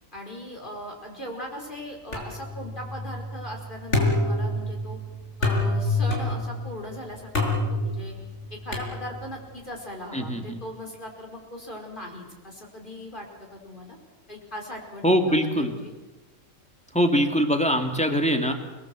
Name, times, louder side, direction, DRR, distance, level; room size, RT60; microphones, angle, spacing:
voice 1, 0.1-5.0 5.4-8.2 8.5-14.0 14.3-15.9 17.9-18.1, left 1 dB, 35° left, 1 dB, 5.2 m, -39 dB
sound 1, 2.1-9.5, left 2 dB, 55° left, 5.7 m, -28 dB
voice 2, 10.1-10.6 15.0-15.7 16.9-18.5, equal, 5° left, 4 dB, 2.7 m, -22 dB
29.0 x 20.0 x 8.0 m, 1.1 s
omnidirectional pair, 1.4 m